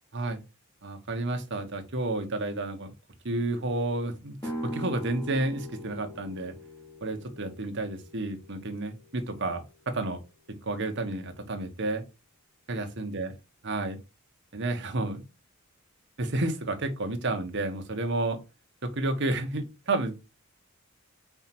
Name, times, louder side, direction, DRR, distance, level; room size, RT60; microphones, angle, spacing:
voice 1, 0.8-2.9 3.2-6.5 7.0-10.2 10.6-12.0 12.7-13.3 13.6-14.0 14.5-15.2 16.2-18.4 18.8-20.1, right 2 dB, 55° right, 1.2 m, -31 dB
sound 1, 4.4-10.1, equal, 15° left, 1.5 m, -42 dB
4.9 x 4.6 x 5.9 m
head